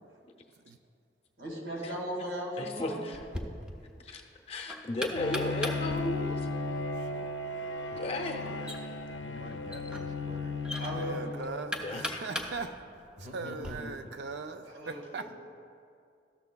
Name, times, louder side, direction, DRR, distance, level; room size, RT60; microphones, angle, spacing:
voice 1, 1.4-3.0 8.4-8.6 10.8-11.3 14.7-15.0, equal, 85° right, -2 dB, 2.0 m, -37 dB
voice 2, 2.6-3.2 4.0-4.2 4.5-6.3 7.9-8.4 11.8-12.2, left 1 dB, 35° left, 2 dB, 0.6 m, -34 dB
Knock, 3.1-13.7, left 1 dB, 5° right, 0.4 m, -41 dB
Bowed string instrument, 5.2-11.8, left 3 dB, 85° left, 0.5 m, -36 dB
voice 3, 6.6-7.3 10.9-12.7 13.3-15.3, right 4 dB, 65° right, 8 dB, 0.4 m, -40 dB
voice 4, 9.2-10.9 13.2-13.9, equal, 40° right, 3 dB, 0.8 m, -46 dB
13.0 x 6.8 x 2.2 m, 2.3 s
head